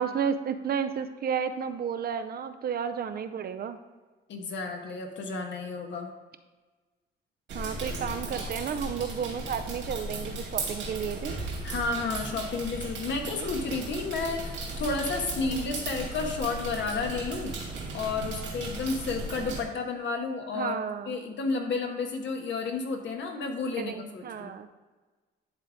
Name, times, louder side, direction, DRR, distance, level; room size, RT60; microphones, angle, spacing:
voice 1, 0.0-3.8 7.5-11.4 13.3-13.5 15.4-15.8 20.5-21.1 23.8-24.7, right 7 dB, 50° right, 9 dB, 0.5 m, -32 dB
voice 2, 4.3-6.1 11.6-17.5 17.9-20.7 21.1-24.5, left 4 dB, 70° left, 3 dB, 1.2 m, -31 dB
sound 1, 7.5-19.6, right 2 dB, 75° right, 2.3 m, -36 dB
10.5 x 3.7 x 3.5 m, 1.3 s
cardioid pair, 90°, 20 cm